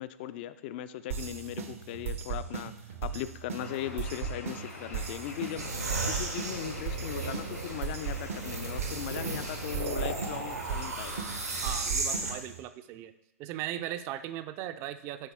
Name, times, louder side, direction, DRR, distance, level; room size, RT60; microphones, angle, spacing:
voice 1, 0.0-2.7 3.0-5.7 6.1-11.2, left 12 dB, 40° left, 14 dB, 0.4 m, -38 dB
sound 1, 1.1-12.6, right 6 dB, 60° right, 0.7 m, -38 dB
Bird, 3.6-11.9, left 3 dB, 80° left, 1.5 m, -46 dB
sound 2, 5.6-12.3, right 3 dB, 85° right, 1.3 m, -35 dB
voice 2, 11.6-13.1 13.4-15.3, right 12 dB, 30° right, 12 dB, 0.4 m, -38 dB
9.8 x 4.1 x 3.5 m, 0.89 s
figure-of-eight pair, 110°, 8 cm